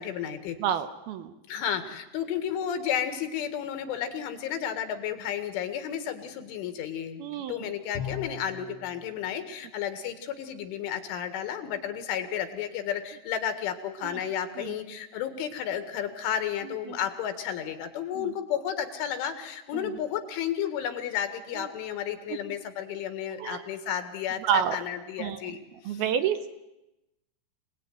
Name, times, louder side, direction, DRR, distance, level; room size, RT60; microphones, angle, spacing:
voice 1, 0.0-0.6 1.5-7.2 7.5-25.6 25.8-26.0, left 9 dB, 75° left, 8 dB, 4.3 m, -32 dB
voice 2, 0.6-1.3 7.2-7.6 14.0-14.2 14.6-14.7 16.9-17.0 18.2-18.3 19.7-19.9 21.6-21.7 22.3-22.4 23.4-23.6 24.4-24.8 25.2-25.5 25.9-26.5, right 8 dB, 75° right, 10 dB, 2.4 m, -29 dB
Bowed string instrument, 7.9-8.8, left 8 dB, 55° left, 2.1 m, -36 dB
27.0 x 19.0 x 9.5 m, 0.93 s
omnidirectional pair, 5.6 m